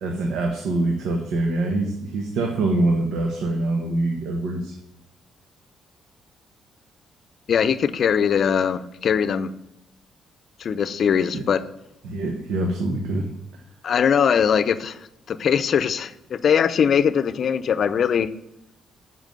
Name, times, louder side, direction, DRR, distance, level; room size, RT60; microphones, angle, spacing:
voice 1, 0.0-4.8 11.3-11.4 12.0-13.3, right 2 dB, 80° right, 2 dB, 1.2 m, -24 dB
voice 2, 7.5-9.5 10.6-11.6 13.8-15.0 15.3-18.3, left 7 dB, 55° left, 12 dB, 0.6 m, -21 dB
7.2 x 5.9 x 7.7 m, 0.85 s
cardioid pair, 90°, 0 cm